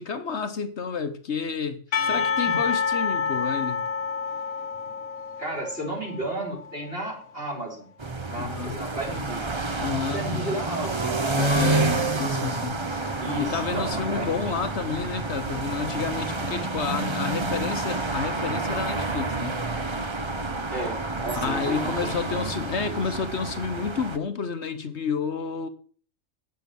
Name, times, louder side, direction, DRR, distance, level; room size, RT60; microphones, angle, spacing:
voice 1, 0.0-3.8 8.3-8.8 9.8-10.4 11.3-12.8 13.4-19.6 21.3-25.7, left 6 dB, 55° left, 1.3 m, -30 dB
Percussion / Church bell, 1.9-7.0, left 5 dB, 90° left, 1.5 m, -28 dB
voice 2, 5.4-7.9 8.3-9.6 10.1-11.6 13.2-14.9 20.7-22.9, right 1 dB, 45° right, 4.8 m, -34 dB
sound 1, 8.0-24.2, right 3 dB, 25° right, 0.7 m, -29 dB
9.1 x 8.0 x 6.9 m
omnidirectional pair, 1.4 m